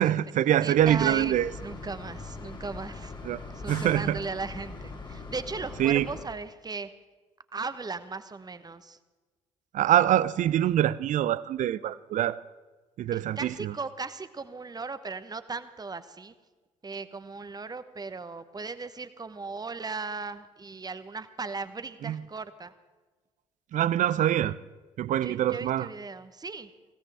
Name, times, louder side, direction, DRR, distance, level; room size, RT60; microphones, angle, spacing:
voice 1, 0.0-1.5 3.2-4.2 5.8-6.1 9.7-12.4 13.0-13.7 22.0-22.2 23.7-24.6 25.0-25.9, right 11 dB, 50° right, 18 dB, 0.6 m, -25 dB
voice 2, 0.6-1.3 1.6-3.1 3.5-6.9 7.5-9.0 13.1-16.3 16.8-22.7 25.2-26.7, right 4 dB, 25° right, 12 dB, 1.1 m, -37 dB
sound 1, 0.8-6.2, left 3 dB, 25° left, 2.1 m, -41 dB
20.5 x 16.5 x 3.5 m, 1.3 s
figure-of-eight pair, 50°, 16 cm